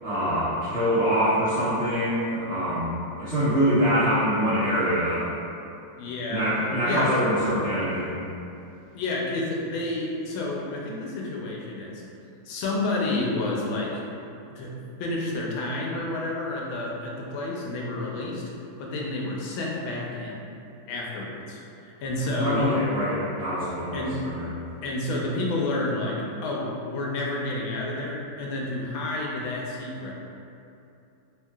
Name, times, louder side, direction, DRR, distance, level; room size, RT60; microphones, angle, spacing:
voice 1, 0.0-5.2 6.3-8.2 22.2-24.6, equal, 50° right, -16 dB, 0.7 m, -24 dB
voice 2, 6.0-6.5 6.8-7.1 8.9-12.0 12.4-14.0 14.5-14.7 15.0-18.4 18.8-20.5 20.9-22.6 23.9-24.2 24.8-30.1, left 2 dB, 85° left, -3 dB, 1.4 m, -30 dB
3.1 x 2.7 x 2.2 m, 2.6 s
omnidirectional pair, 2.1 m